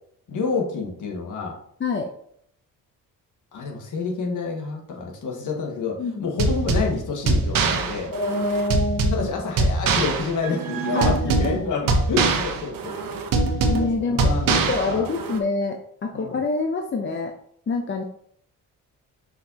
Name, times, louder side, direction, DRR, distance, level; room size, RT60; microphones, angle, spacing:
voice 1, 0.3-1.6 3.5-8.1 9.1-13.2 14.0-15.0 16.1-16.4, left 4 dB, 65° left, 0 dB, 1.8 m, -28 dB
voice 2, 6.0-6.3 8.1-9.3 10.9-11.7 13.7-17.3 17.7-18.0, left 3 dB, 35° left, 4 dB, 0.7 m, -26 dB
sound 1, 6.4-15.4, right 3 dB, 75° right, 1.1 m, -23 dB
6.1 x 5.5 x 2.9 m, 0.66 s
cardioid pair, 95°, 34 cm